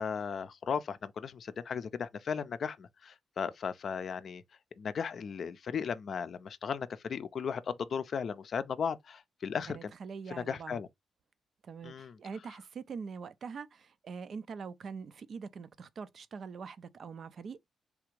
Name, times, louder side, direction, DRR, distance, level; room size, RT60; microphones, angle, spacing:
voice 1, 0.0-4.4 4.8-9.9 10.3-10.9 11.8-12.1, left 6 dB, 60° left, 0.4 m, -36 dB
voice 2, 9.7-10.8 11.6-17.7, right 5 dB, 60° right, 0.4 m, -43 dB
3.5 x 2.4 x 3.0 m
supercardioid pair, 55°, 0 cm